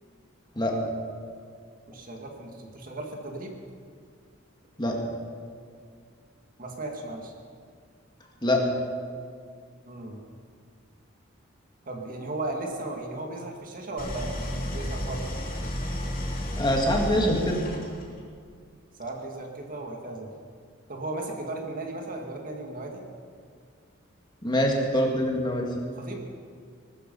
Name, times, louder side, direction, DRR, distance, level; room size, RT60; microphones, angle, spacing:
voice 1, 1.9-3.5 4.8-5.0 6.6-7.3 9.9-10.2 11.9-15.3 19.0-20.3 20.9-23.0 25.9-26.2, right 2 dB, 40° right, 1 dB, 2.0 m, -36 dB
Idling, 14.0-18.2, equal, 45° left, 2.9 m, -32 dB
voice 2, 16.6-17.6 24.4-25.7, left 1 dB, 20° left, 0 dB, 2.1 m, -24 dB
20.0 x 13.0 x 5.5 m, 2.1 s
head